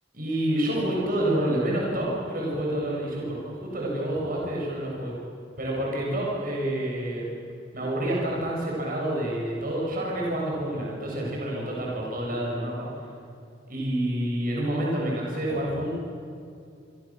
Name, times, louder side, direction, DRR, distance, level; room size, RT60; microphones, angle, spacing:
voice 1, 0.1-5.1 5.6-7.2 7.7-12.9 13.7-15.9, right 1 dB, 45° right, -3 dB, 7.4 m, -28 dB
27.5 x 24.5 x 7.6 m, 2.4 s
head